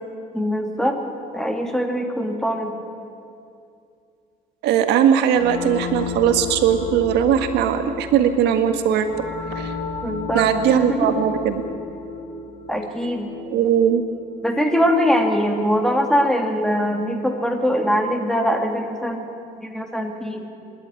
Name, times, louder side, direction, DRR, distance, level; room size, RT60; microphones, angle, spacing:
voice 1, 0.3-1.0 1.3-2.7 10.0-11.1 12.7-13.3 14.4-19.3 19.6-20.5, equal, 5° left, 4 dB, 2.6 m, -22 dB
voice 2, 4.6-9.3 9.5-9.8 10.3-11.6 13.5-14.0, right 9 dB, 85° right, 8 dB, 1.7 m, -19 dB
sound 1, 5.3-15.8, left 5 dB, 75° left, 2.8 m, -34 dB
26.0 x 11.5 x 9.9 m, 2.5 s
cardioid pair, 110°, 17 cm